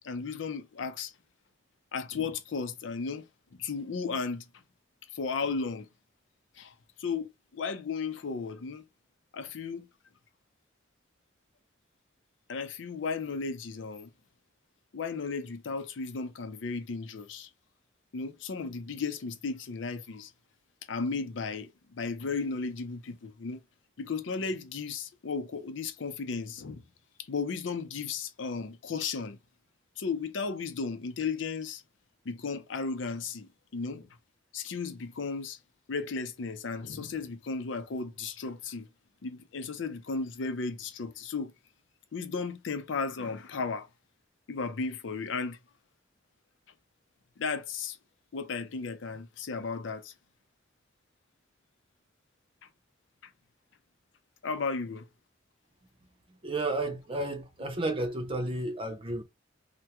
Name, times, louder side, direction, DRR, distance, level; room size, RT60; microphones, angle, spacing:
voice 1, 0.0-1.1 1.9-3.2 3.6-4.5 5.1-5.9 6.6-6.7 7.0-8.8 9.3-9.9 12.5-14.1 14.9-17.5 18.1-20.3 20.9-23.6 24.0-26.9 27.3-29.4 30.0-31.8 32.3-34.1 34.5-35.6 35.9-38.9 39.2-41.5 42.1-43.9 44.5-45.6 47.4-48.0 48.3-50.1 54.4-55.1, left 4 dB, 90° left, 0.5 m, -35 dB
voice 2, 56.3-59.2, right 2 dB, 30° right, 0.7 m, -32 dB
3.4 x 2.2 x 2.9 m
head